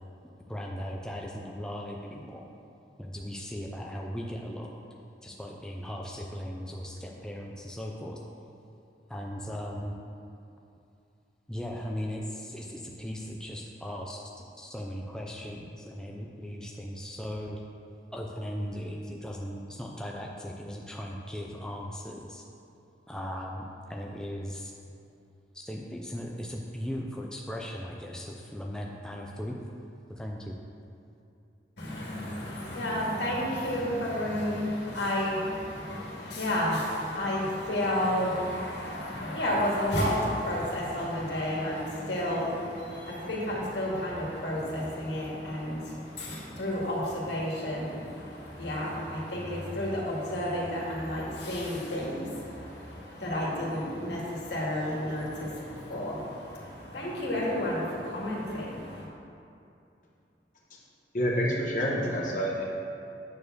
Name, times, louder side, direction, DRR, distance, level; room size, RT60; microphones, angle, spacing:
voice 1, 0.5-2.5 3.0-4.8 5.2-8.2 9.1-9.9 11.5-14.2 14.6-17.6 18.1-22.4 23.1-24.7 25.5-29.6 30.1-30.6, equal, 5° left, -1 dB, 0.4 m, -38 dB
voice 2, 31.8-59.1, left 1 dB, 80° left, -5 dB, 2.2 m, -31 dB
voice 3, 61.1-62.6, equal, 45° left, -4 dB, 1.2 m, -27 dB
9.0 x 4.5 x 6.7 m, 2.6 s
head